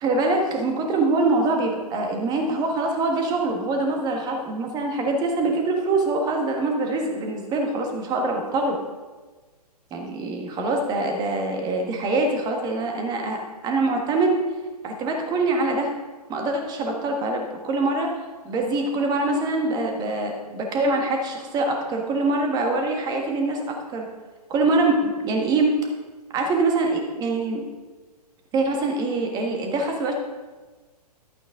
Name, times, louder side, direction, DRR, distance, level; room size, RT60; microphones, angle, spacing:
voice 1, 0.0-8.8 9.9-14.4 14.8-15.9 16.3-18.2 18.4-24.1 24.5-25.7 26.3-27.6 28.5-30.1, right 2 dB, 20° right, 2 dB, 1.5 m, -24 dB
12.0 x 8.2 x 3.7 m, 1.3 s
figure-of-eight pair, 120°, 21 cm